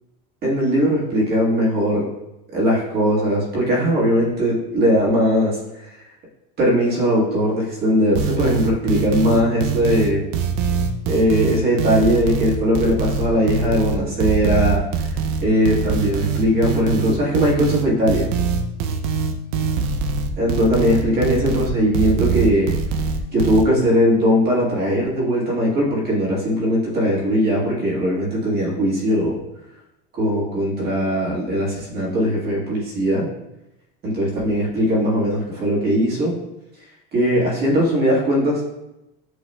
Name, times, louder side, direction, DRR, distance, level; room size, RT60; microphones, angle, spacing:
voice 1, 0.4-2.1 2.5-5.6 6.6-10.2 11.0-14.8 15.4-18.3 20.4-22.7 23.3-29.4 30.2-33.3 34.0-36.4 37.1-38.8, equal, 35° right, -5 dB, 1.6 m, -19 dB
sound 1, 8.1-23.6, right 5 dB, 55° right, 0.5 m, -23 dB
8.0 x 2.8 x 2.2 m, 0.91 s
supercardioid pair, 150°, 29 cm